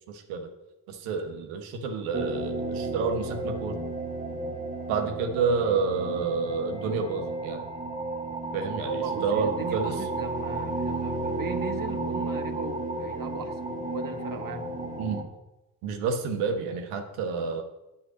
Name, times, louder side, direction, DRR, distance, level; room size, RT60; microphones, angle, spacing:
voice 1, 0.1-0.5 0.9-3.8 4.9-7.6 8.5-10.0 15.0-15.2 15.8-17.6, right 5 dB, 80° right, 6 dB, 1.4 m, -29 dB
sound 1, 2.1-15.2, right 2 dB, 15° right, 1.8 m, -33 dB
voice 2, 8.8-13.6 13.9-14.7, right 5 dB, 40° right, 7 dB, 1.4 m, -37 dB
8.6 x 5.8 x 7.6 m, 0.98 s
hypercardioid pair, 55°, 48 cm